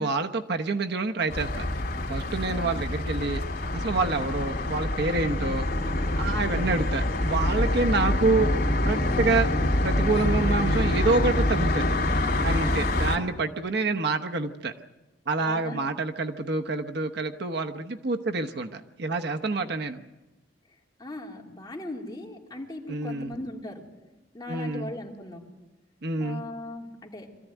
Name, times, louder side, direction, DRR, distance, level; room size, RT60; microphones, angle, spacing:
voice 1, 0.0-1.7 2.1-3.4 3.7-5.7 6.2-8.5 8.9-11.9 12.4-14.7 15.3-20.0 22.9-23.4 24.5-24.9 26.0-26.4, right 3 dB, 60° right, 6 dB, 1.0 m, -27 dB
sound 1, 1.3-13.2, left 1 dB, 55° left, 2.7 m, -26 dB
voice 2, 2.5-2.8 4.3-4.5 12.6-12.9 15.4-15.8 21.0-23.8 24.3-25.4 26.2-27.3, left 1 dB, 20° left, -2 dB, 3.0 m, -39 dB
23.5 x 14.5 x 9.2 m, 1.1 s
head